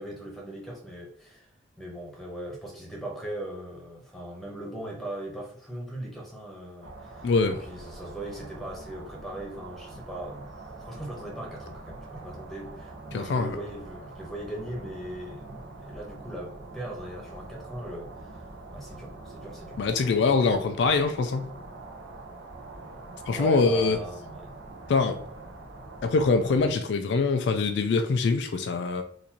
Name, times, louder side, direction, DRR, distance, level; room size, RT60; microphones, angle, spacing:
voice 1, 0.0-1.5 1.8-7.3 7.6-19.8 23.3-24.5, right 1 dB, ahead, 1.0 m, -39 dB
sound 1, 6.8-26.7, right 2 dB, 75° right, 0.8 m, -44 dB
voice 2, 7.2-7.6 13.1-13.6 19.8-21.5 23.3-24.0 24.9-25.2 26.0-29.0, left 4 dB, 65° left, 0.3 m, -24 dB
3.9 x 2.6 x 2.8 m
head